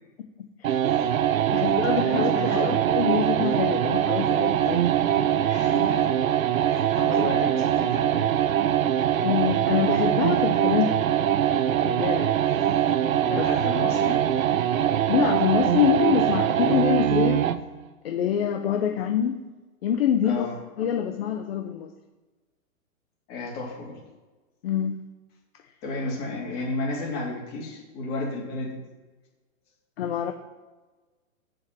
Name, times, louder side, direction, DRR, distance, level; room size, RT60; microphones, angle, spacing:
voice 1, 0.2-0.8 1.5-4.8 9.2-11.0 11.8-12.3 13.3-13.5 15.1-17.4 18.0-19.4 19.8-20.5 20.8-21.9 24.6-25.0 30.0-30.3, left 9 dB, 45° left, 5 dB, 0.9 m, -25 dB
sound 1, 0.6-17.7, right 10 dB, 75° right, 0.8 m, -23 dB
voice 2, 1.5-2.9 4.6-4.7 5.5-6.1 6.7-8.3 13.3-14.3 20.2-20.5 23.3-24.0 25.8-28.8, left 3 dB, 25° left, -2 dB, 2.7 m, -32 dB
7.1 x 6.5 x 7.6 m, 1.2 s
hypercardioid pair, 165°, 41 cm